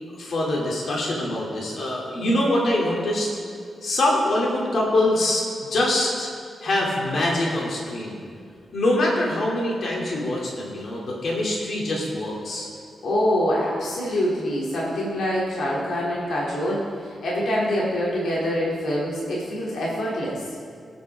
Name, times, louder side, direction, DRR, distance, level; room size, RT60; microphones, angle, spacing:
voice 1, 0.1-3.3 3.8-6.3 6.6-8.2 8.7-12.7, left 1 dB, 65° left, -3 dB, 2.7 m, -24 dB
voice 2, 13.0-20.4, equal, 85° left, -5 dB, 2.7 m, -25 dB
22.5 x 8.7 x 3.6 m, 2.3 s
cardioid pair, 100°, 0 cm